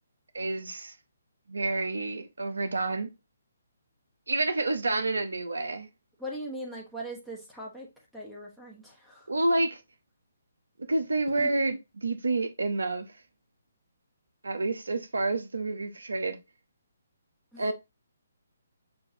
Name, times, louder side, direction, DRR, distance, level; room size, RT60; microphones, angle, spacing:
voice 1, 0.3-0.9 1.5-3.1 4.3-5.9 9.3-9.8 10.9-13.1 14.4-16.4 17.6-17.7, right 2 dB, 80° right, 0.7 m, -29 dB
voice 2, 6.2-7.9 8.1-9.3 11.4-11.5 17.5-17.6, right 1 dB, ahead, 1.1 m, -40 dB
6.7 x 2.5 x 2.6 m
figure-of-eight pair, 140°, 0 cm